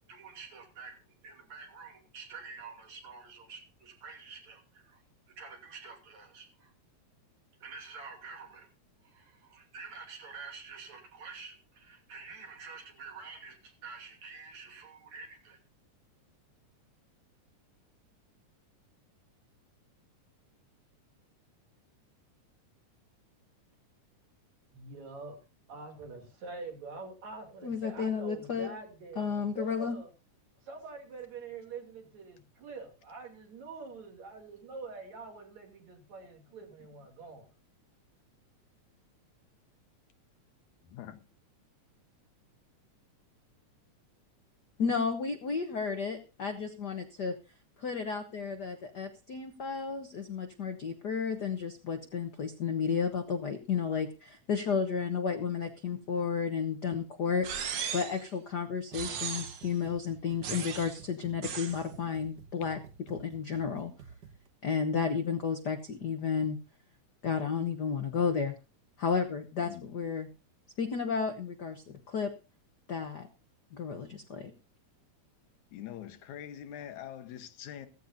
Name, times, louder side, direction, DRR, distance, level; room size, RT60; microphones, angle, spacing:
voice 1, 0.1-1.0 1.2-5.0 5.4-6.7 7.6-8.7 9.0-15.6 24.7-25.4 25.7-30.1 30.6-37.5, right 4 dB, 65° right, 4.1 m, -46 dB
voice 2, 27.6-28.7 29.2-29.9 44.8-47.3 47.8-62.8 63.1-63.9 64.6-66.6 67.2-68.5 69.0-70.3 70.8-72.3 72.9-73.3 73.7-74.5, left 6 dB, 60° left, 1.0 m, -32 dB
voice 3, 40.8-41.2 69.6-69.9 75.7-77.9, left 10 dB, 80° left, 2.5 m, -44 dB
sound 1, 57.4-58.2 58.9-59.7 60.4-61.0 61.4-61.8, right 7 dB, 90° right, 3.0 m, -37 dB
sound 2, 58.9-64.5, right 6 dB, 50° right, 1.2 m, -51 dB
16.0 x 15.0 x 2.7 m
omnidirectional pair, 3.4 m